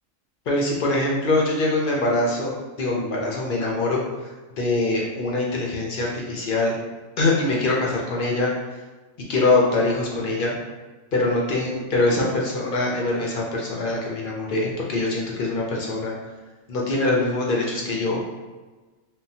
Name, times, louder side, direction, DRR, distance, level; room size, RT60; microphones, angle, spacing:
voice 1, 0.5-4.0 4.6-6.8 7.2-8.5 9.3-10.5 11.1-16.1 16.7-18.2, left 2 dB, 55° left, -2 dB, 0.6 m, -23 dB
3.6 x 2.2 x 2.7 m, 1.3 s
omnidirectional pair, 1.4 m